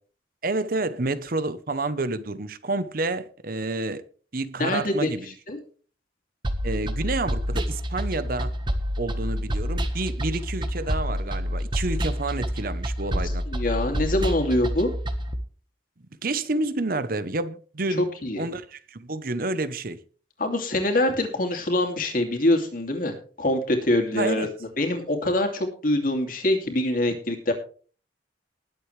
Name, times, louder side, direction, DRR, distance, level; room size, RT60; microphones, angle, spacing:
voice 1, 0.4-4.0 4.3-5.3 6.6-8.5 9.0-13.4 16.2-18.1 18.4-20.0 24.1-24.5, right 2 dB, 50° right, 0.9 m, -29 dB
voice 2, 4.6-5.1 5.5-5.6 13.1-13.2 13.5-14.9 18.2-18.4 20.4-24.5 24.8-27.5, left 1 dB, 50° left, 2.8 m, -24 dB
sound 1, 6.4-15.3, equal, 25° right, 1.3 m, -28 dB
20.0 x 8.0 x 3.3 m
head